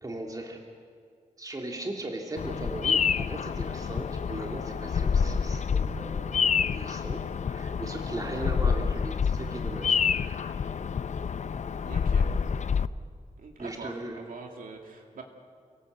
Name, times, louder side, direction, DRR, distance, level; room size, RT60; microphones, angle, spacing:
voice 1, 0.0-0.6 1.4-7.2 7.4-10.5 13.6-14.2, right 1 dB, 25° right, 1 dB, 2.5 m, -38 dB
Bird vocalization bird call bird song, 2.4-12.9, left 6 dB, 60° left, 0.6 m, -28 dB
voice 2, 11.8-12.3 13.4-15.2, right 4 dB, 90° right, 2 dB, 2.4 m, -44 dB
29.0 x 18.0 x 8.0 m, 2.2 s
wide cardioid pair, 125°, 14 cm